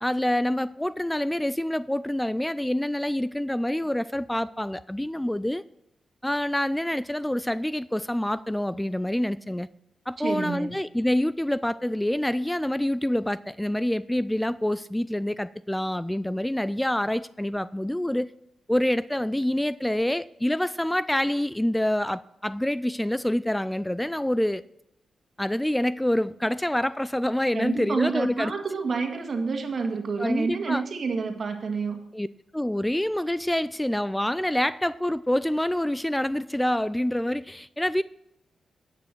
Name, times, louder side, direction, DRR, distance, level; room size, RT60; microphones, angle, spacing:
voice 1, 0.0-5.6 6.2-9.7 10.1-18.3 18.7-24.6 25.4-28.5 30.2-30.8 32.1-32.3 32.5-38.0, left 1 dB, 10° left, 0.3 m, -26 dB
voice 2, 10.2-10.7 27.5-32.0, right 4 dB, 55° right, 1.8 m, -28 dB
9.5 x 8.8 x 4.5 m
cardioid pair, 60°, 0 cm